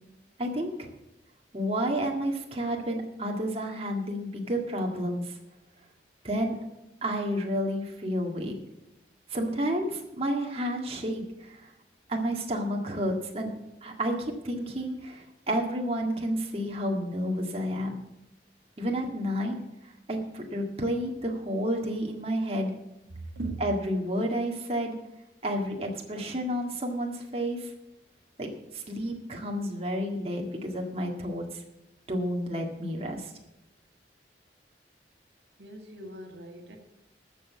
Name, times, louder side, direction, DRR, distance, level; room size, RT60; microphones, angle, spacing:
voice 1, 0.4-0.9 1.5-5.4 6.2-6.6 7.0-8.6 9.3-11.7 12.1-13.5 13.8-18.0 18.8-19.6 20.1-22.7 23.6-25.0 25.4-27.7 28.4-28.5 28.7-31.6 32.1-33.3, equal, 35° right, 1 dB, 1.8 m, -30 dB
voice 2, 23.3-23.7 35.6-36.8, right 2 dB, 80° right, 4 dB, 1.7 m, -38 dB
14.0 x 6.3 x 8.4 m, 0.91 s
head